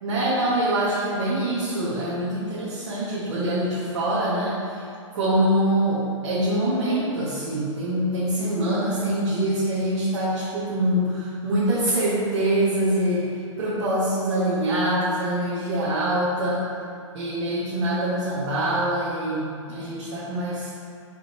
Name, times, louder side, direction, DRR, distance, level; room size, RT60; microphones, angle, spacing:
voice 1, 0.0-4.8 5.1-13.3 13.6-16.6 17.1-20.7, right 1 dB, 60° right, -9 dB, 1.1 m, -24 dB
4.6 x 3.8 x 3.0 m, 2.3 s
figure-of-eight pair, 105°, 16 cm